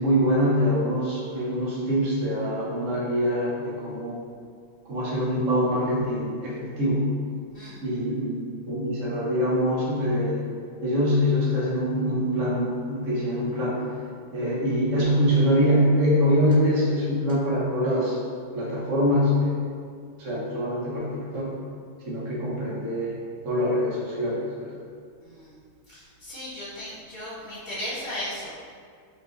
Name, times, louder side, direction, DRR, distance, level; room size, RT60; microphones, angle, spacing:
voice 1, 0.0-4.2 4.9-7.1 7.8-10.4 10.8-13.8 14.3-18.2 18.5-19.6 20.2-21.5 22.1-23.1 23.4-24.7, equal, 50° right, -6 dB, 1.1 m, -24 dB
voice 2, 25.2-25.6 25.9-28.5, left 1 dB, 25° right, -13 dB, 1.3 m, -36 dB
4.7 x 2.3 x 3.8 m, 2.1 s
omnidirectional pair, 2.2 m